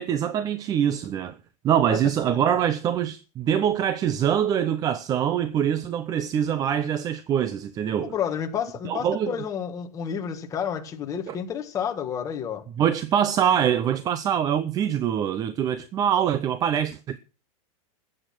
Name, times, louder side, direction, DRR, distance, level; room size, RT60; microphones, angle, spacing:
voice 1, 0.0-1.4 1.6-8.1 8.8-9.3 11.3-11.4 12.8-17.2, right 9 dB, 20° right, 0.6 m, -24 dB
voice 2, 8.0-12.6, left 8 dB, 20° left, 1.8 m, -30 dB
14.5 x 8.6 x 6.1 m
supercardioid pair, 165°, 18 cm